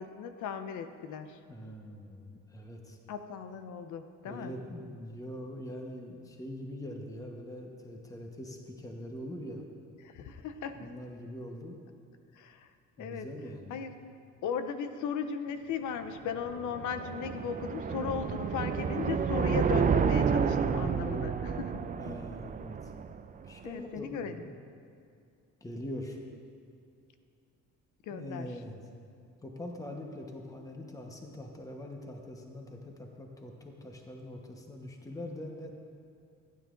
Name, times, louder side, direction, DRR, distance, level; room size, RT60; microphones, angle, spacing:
voice 1, 0.0-1.4 3.1-4.5 10.0-10.9 12.4-12.7 13.0-13.3 13.7-13.9 14.4-21.8 23.6-24.4 28.1-28.5, left 6 dB, 80° left, 9 dB, 0.7 m, -37 dB
voice 2, 1.5-3.0 4.2-9.6 10.7-11.8 13.0-13.9 22.0-22.9 23.4-24.6 25.6-26.2 28.1-28.8 29.4-35.7, left 1 dB, 10° left, 1 dB, 1.0 m, -43 dB
sound 1, 16.1-23.5, right 6 dB, 30° right, 0.4 m, -30 dB
15.5 x 9.2 x 2.5 m, 2.4 s
cardioid pair, 90°, 30 cm